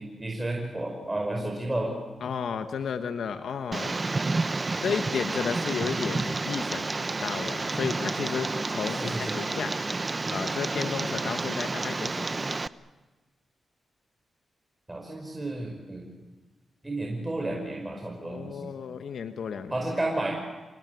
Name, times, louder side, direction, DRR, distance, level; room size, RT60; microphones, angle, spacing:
voice 1, 0.0-1.9 8.9-9.4 14.9-16.1 16.8-18.7 19.7-20.4, right 1 dB, 20° right, 1 dB, 5.4 m, -32 dB
voice 2, 2.2-3.9 4.8-9.8 10.3-12.6 18.2-19.7, left 6 dB, 75° left, 8 dB, 1.2 m, -33 dB
Tick, 3.7-12.7, right 3 dB, 35° right, 0.9 m, -30 dB
27.5 x 19.5 x 9.5 m, 1.2 s
cardioid pair, 55°, 0 cm